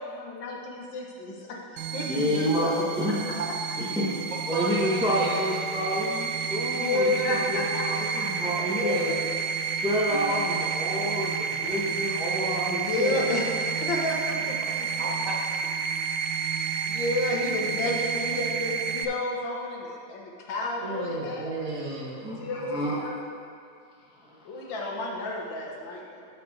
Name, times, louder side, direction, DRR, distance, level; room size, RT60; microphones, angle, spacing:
voice 1, 0.1-1.4 1.7-2.8 6.7-9.2 10.1-10.4 12.7-14.9 16.6-21.5 22.4-23.1 24.5-26.3, left 2 dB, 70° left, -1 dB, 1.8 m, -31 dB
sound 1, 1.8-19.1, right 7 dB, 80° right, 1.4 m, -30 dB
voice 2, 2.1-3.2 3.8-4.1 4.5-9.2 9.8-13.2 22.2-23.0, equal, 5° right, -4 dB, 0.7 m, -28 dB
voice 3, 4.5-5.6 8.3-8.4 14.8-15.3 20.8-22.5, right 2 dB, 50° right, -3 dB, 1.1 m, -34 dB
11.5 x 5.6 x 4.1 m, 2.4 s
omnidirectional pair, 2.2 m